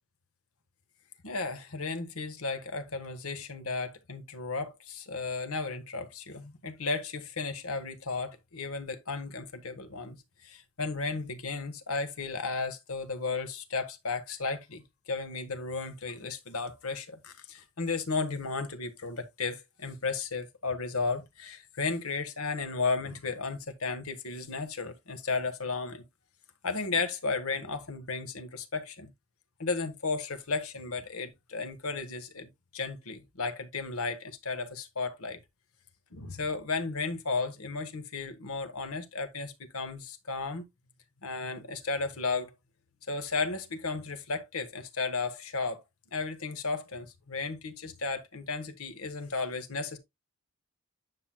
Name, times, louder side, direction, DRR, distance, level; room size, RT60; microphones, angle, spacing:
voice 1, 1.2-10.2 10.4-14.8 15.1-26.0 26.6-29.1 29.6-35.4 36.1-40.6 41.2-42.5 43.1-45.8 46.1-50.0, left 4 dB, 85° left, 1.3 m, -34 dB
9.7 x 5.8 x 2.3 m
head